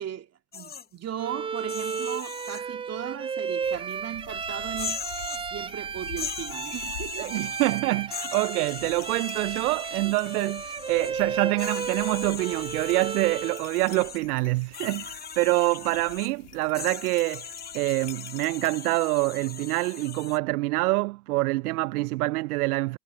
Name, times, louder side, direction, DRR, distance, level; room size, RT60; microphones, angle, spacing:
voice 1, 0.0-5.0 5.5-7.5, right 10 dB, 30° right, 2.5 m, -37 dB
sound 1, 0.5-0.9 1.6-2.6 3.7-3.8 4.7-5.5 6.0-7.8 8.1-11.1 11.6-14.2 14.7-16.3 16.7-20.4, left 7 dB, 20° left, 1.5 m, -39 dB
Bowed string instrument, 1.2-13.7, right 6 dB, 10° right, 0.5 m, -34 dB
sound 2, 3.6-18.7, left 12 dB, 80° left, 3.0 m, -48 dB
voice 2, 7.2-23.0, right 21 dB, 70° right, 0.5 m, -26 dB
hypercardioid pair, 90°, 48 cm